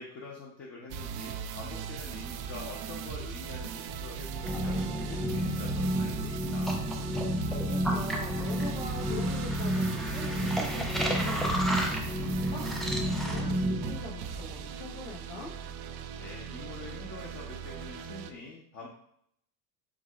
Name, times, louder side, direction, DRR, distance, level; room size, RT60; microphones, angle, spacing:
voice 1, 0.0-6.8 16.2-18.9, left 3 dB, 30° left, -3 dB, 0.7 m, -45 dB
sound 1, 0.9-18.3, right 7 dB, 55° right, 0.5 m, -39 dB
sound 2, 4.4-14.0, equal, ahead, 0.3 m, -30 dB
voice 2, 7.5-12.7 13.3-15.5, left 2 dB, 85° left, -1 dB, 1.4 m, -42 dB
4.7 x 3.6 x 2.4 m, 0.71 s
supercardioid pair, 115°, 47 cm